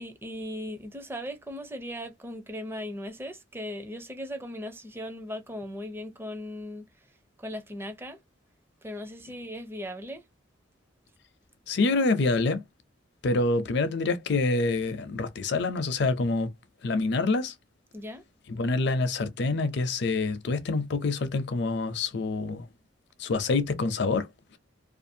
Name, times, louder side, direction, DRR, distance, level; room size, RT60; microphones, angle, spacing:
voice 1, 0.0-6.9 7.4-8.2 8.8-10.2 17.9-18.2, left 1 dB, 10° right, 0.5 m, -38 dB
voice 2, 11.7-12.6 13.2-16.5 16.8-17.5 18.5-22.7 23.2-24.6, left 3 dB, 65° left, 0.5 m, -26 dB
2.5 x 2.3 x 2.6 m
head